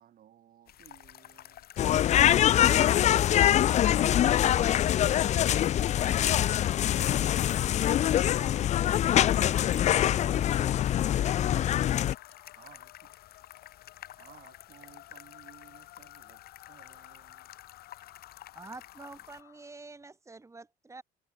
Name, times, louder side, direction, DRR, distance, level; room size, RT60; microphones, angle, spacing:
voice 1, 0.0-1.7 5.4-8.6 12.5-13.4 14.2-17.5, right 11 dB, 60° right, 7.3 m, -58 dB
sound 1, 0.7-19.4, left 12 dB, 65° left, 5.2 m, -52 dB
sound 2, 0.9-19.8, left 18 dB, 85° left, 1.6 m, -54 dB
sound 3, 1.8-12.1, left 11 dB, 45° left, 0.4 m, -24 dB
voice 2, 2.3-2.4, left 2 dB, 10° left, 2.4 m, -51 dB
voice 3, 18.5-21.0, right 3 dB, 15° right, 4.1 m, -47 dB
cardioid pair, 110°, 17 cm